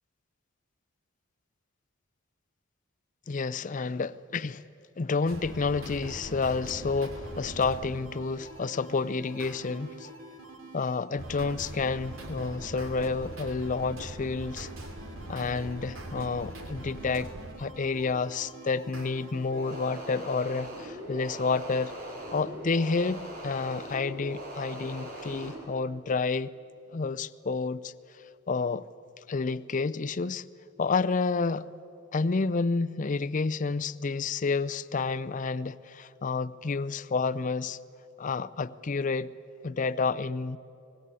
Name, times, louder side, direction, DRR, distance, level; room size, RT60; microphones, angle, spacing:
voice 1, 3.3-4.6 5.0-10.1 10.7-14.7 15.3-17.3 17.6-21.9 22.3-26.5 26.9-27.9 28.5-28.8 29.3-30.4 30.8-31.7 32.1-37.8 38.2-39.3 39.6-40.6, left 4 dB, 40° left, 0.5 m, -30 dB
sound 1, 5.3-20.0, right 1 dB, 85° right, 2.5 m, -42 dB
sound 2, 19.5-25.6, right 1 dB, 50° right, 4.8 m, -41 dB
24.0 x 20.0 x 8.2 m
head